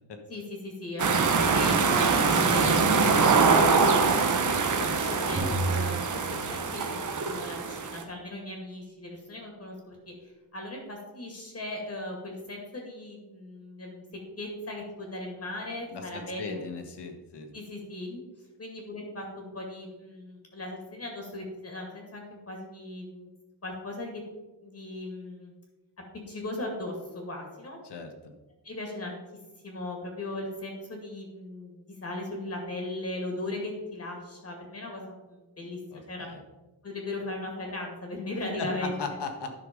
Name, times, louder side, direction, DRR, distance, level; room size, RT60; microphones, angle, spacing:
voice 1, 0.3-1.1 1.5-4.4 4.7-14.0 14.4-16.7 17.5-18.2 18.6-23.3 23.6-24.2 24.6-25.5 26.3-27.8 28.6-29.2 29.6-36.3 36.8-39.0, left 2 dB, 35° left, 1 dB, 2.2 m, -38 dB
sound 1, 1.0-8.0, right 4 dB, 45° right, 1.1 m, -24 dB
sound 2, 5.4-7.3, right 2 dB, 15° right, 1.8 m, -33 dB
voice 2, 15.9-17.5 27.8-28.1 35.9-36.4 38.6-39.5, left 4 dB, 70° left, 5 dB, 1.6 m, -37 dB
11.5 x 5.9 x 5.2 m, 1.1 s
wide cardioid pair, 150°, 42 cm